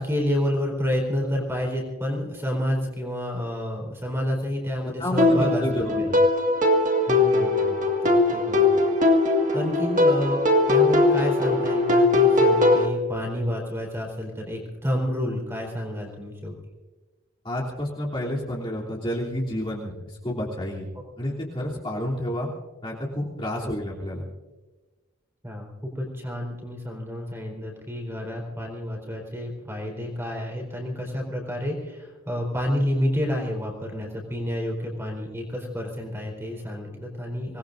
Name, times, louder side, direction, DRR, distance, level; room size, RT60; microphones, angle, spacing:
voice 1, 0.0-6.1 7.1-9.2 9.5-10.4 10.7-16.5 23.6-23.7 25.4-37.6, equal, 10° right, 0 dB, 4.0 m, -29 dB
voice 2, 4.8-6.2 17.4-20.9 21.2-22.5 22.8-24.2, left 1 dB, 25° left, -6 dB, 3.1 m, -30 dB
sound 1, 5.2-12.9, left 2 dB, 35° right, 1.9 m, -20 dB
25.5 x 20.0 x 2.6 m, 1.2 s
head